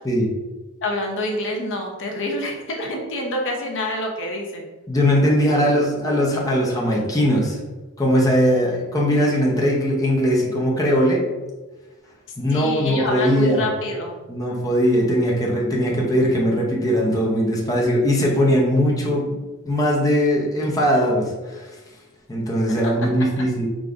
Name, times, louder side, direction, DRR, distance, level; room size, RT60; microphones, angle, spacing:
voice 1, 0.8-4.7 12.5-14.2 23.0-23.1, left 1 dB, 60° left, 1 dB, 0.7 m, -27 dB
voice 2, 4.9-7.6 8.0-11.2 12.4-13.7 14.3-21.7 22.3-23.7, equal, 15° left, -3 dB, 0.7 m, -20 dB
5.1 x 3.6 x 2.5 m, 1.2 s
head